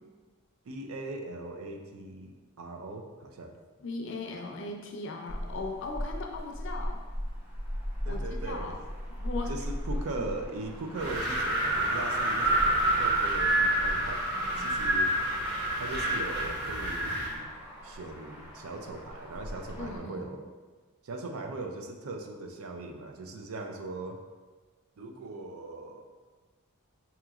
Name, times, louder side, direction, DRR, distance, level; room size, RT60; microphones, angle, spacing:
voice 1, 0.7-3.6 8.0-8.8 9.5-14.3 14.6-15.1 15.8-17.5 17.8-20.4 21.0-24.2 25.0-26.0, right 2 dB, 80° right, 4 dB, 0.4 m, -39 dB
voice 2, 3.8-7.0 8.0-8.8 9.2-9.5 14.3-14.8 19.8-20.3, left 3 dB, 55° left, 1 dB, 0.4 m, -38 dB
Motor vehicle (road), 5.3-20.0, equal, 10° right, 0.6 m, -39 dB
Wind, 10.9-17.4, right 1 dB, 55° right, 0.9 m, -28 dB
4.9 x 2.9 x 2.3 m, 1.4 s
head